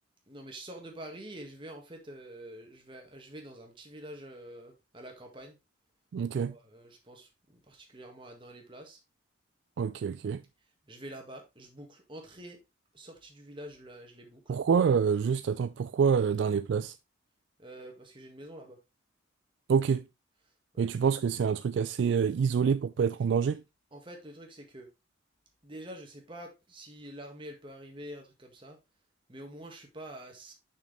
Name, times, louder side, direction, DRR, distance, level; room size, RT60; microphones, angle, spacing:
voice 1, 0.3-5.6 6.3-9.0 10.8-12.6 12.9-14.6 17.6-18.8 20.7-20.9 23.9-24.9 25.6-28.8 29.3-30.5, right 1 dB, 25° right, 1.8 m, -47 dB
voice 2, 6.1-6.5 9.8-10.4 14.5-17.0 19.7-20.1 20.8-23.6, right 6 dB, 65° right, 0.3 m, -27 dB
6.5 x 6.2 x 3.3 m
head